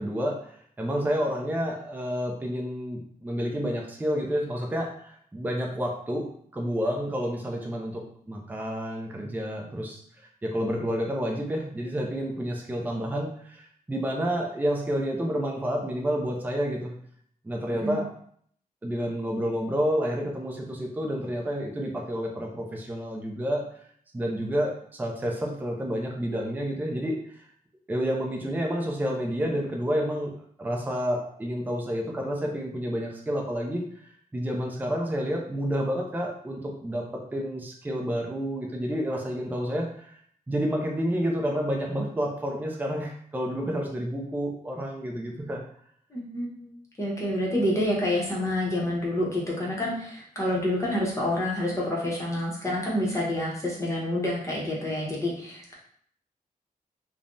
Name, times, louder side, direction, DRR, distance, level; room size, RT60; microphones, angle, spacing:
voice 1, 0.0-10.0 10.4-16.9 17.4-18.1 18.8-23.6 24.1-27.2 27.9-30.3 30.6-40.2 40.5-45.6, equal, 10° right, 0 dB, 0.4 m, -29 dB
voice 2, 46.1-55.7, left 1 dB, 20° left, -4 dB, 0.8 m, -28 dB
3.3 x 2.1 x 2.5 m, 0.62 s
wide cardioid pair, 130°, 15 cm